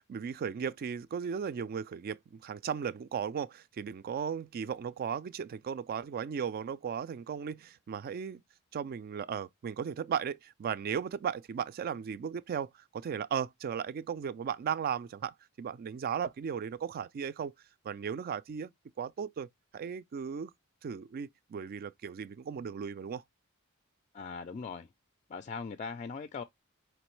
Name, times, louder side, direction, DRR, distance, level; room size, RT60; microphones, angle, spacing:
voice 1, 0.0-8.4 8.7-17.5 17.8-18.7 19.0-20.5 20.8-23.2, right 7 dB, 45° right, 0.3 m, -36 dB
voice 2, 24.1-24.9 25.3-26.4, left 5 dB, 35° left, 0.4 m, -40 dB
5.0 x 3.1 x 3.0 m
head